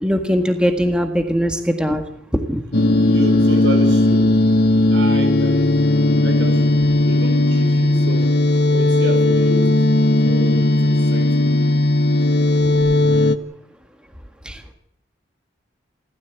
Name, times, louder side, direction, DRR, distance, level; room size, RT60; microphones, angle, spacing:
voice 1, 0.0-2.0 2.3-2.6 12.6-12.7 14.4-14.7, equal, 5° right, 5 dB, 1.7 m, -20 dB
sound 1, 2.7-13.4, left 1 dB, 60° left, 1.3 m, -16 dB
voice 2, 3.0-4.4 4.9-5.8 6.2-6.7 7.1-8.3 8.7-9.9 10.2-11.5, right 1 dB, 80° right, 7 dB, 5.9 m, -31 dB
28.0 x 14.0 x 8.2 m, 0.76 s
head